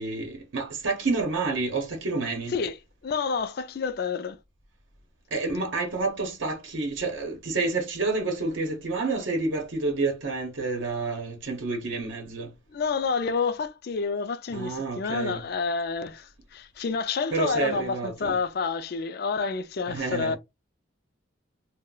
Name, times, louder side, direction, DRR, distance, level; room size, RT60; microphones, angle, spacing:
voice 1, 0.0-2.5 5.3-12.5 14.5-15.4 17.3-18.4 19.9-20.4, right 3 dB, 75° right, 0.8 m, -29 dB
voice 2, 2.5-4.4 12.7-20.4, left 5 dB, 50° left, 0.4 m, -29 dB
2.3 x 2.1 x 3.8 m
head